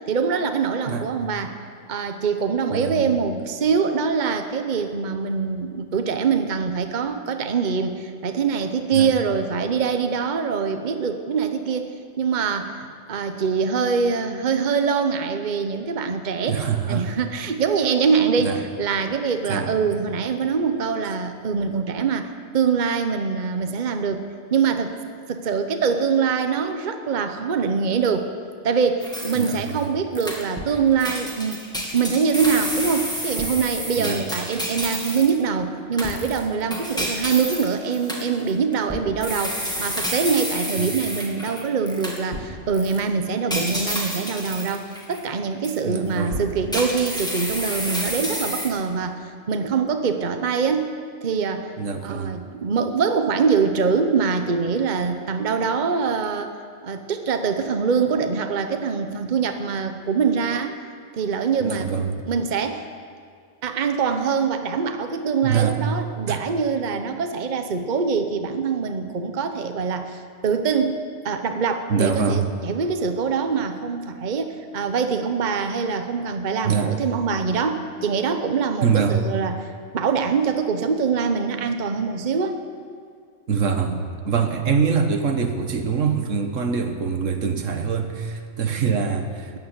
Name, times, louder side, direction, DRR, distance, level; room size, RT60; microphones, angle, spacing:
voice 1, 0.0-1.6 1.9-11.9 12.2-24.3 24.5-25.0 25.3-28.3 28.6-31.6 31.9-50.9 51.2-51.7 52.0-56.5 56.8-60.8 61.1-61.9 62.3-62.9 63.6-82.6, right 5 dB, 40° right, 7 dB, 1.0 m, -24 dB
voice 2, 2.7-3.1 8.9-9.1 16.5-17.1 18.4-18.6 19.5-19.7 29.3-29.9 34.0-34.2 40.8-40.9 45.8-46.4 51.8-52.3 61.6-62.2 65.4-65.8 66.3-66.4 71.9-72.4 76.6-77.0 78.8-79.2 83.5-89.6, right 6 dB, 75° right, 6 dB, 1.6 m, -24 dB
sound 1, 29.0-29.8 30.2-30.7 31.0-35.4 36.0-42.5 42.7-43.0 43.5-45.2 45.6-45.8 46.3-48.7, equal, 5° left, 2.4 m, -30 dB
14.5 x 9.5 x 9.6 m, 2.2 s
omnidirectional pair, 1.3 m